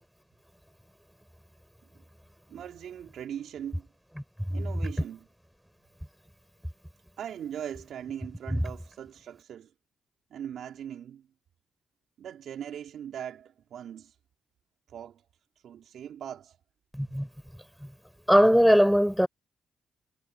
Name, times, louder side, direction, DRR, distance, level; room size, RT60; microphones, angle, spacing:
voice 1, 2.5-3.9 4.5-5.3 7.2-9.7 10.3-11.3 12.2-14.1 14.9-15.2 15.6-16.6, right 9 dB, 75° right, 4.5 m, -40 dB
voice 2, 16.9-17.3 17.8-17.9 18.3-19.3, equal, ahead, 5.5 m, -20 dB
supercardioid pair, 60°, 0 cm